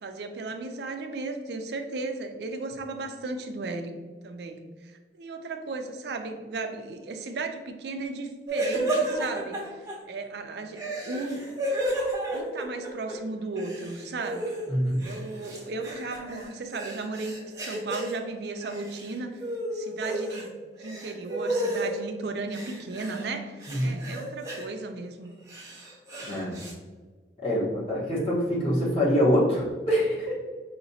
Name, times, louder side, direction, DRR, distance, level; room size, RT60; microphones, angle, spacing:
voice 1, 0.0-3.9 4.2-11.4 12.3-14.6 15.0-19.4 19.7-25.3, right 3 dB, 60° right, 6 dB, 0.4 m, -35 dB
sound 1, 8.5-9.9 10.7-13.1 13.4-14.7 15.0-18.1 18.6-19.1 19.4-20.5 20.8-21.9 22.5-23.3 23.6-24.6 25.2-26.7, right 1 dB, 15° right, 0.8 m, -32 dB
voice 2, 14.7-15.0 23.7-24.0 26.2-26.6 27.4-30.3, equal, 30° left, -7 dB, 1.1 m, -25 dB
4.9 x 2.9 x 2.7 m, 1.4 s
head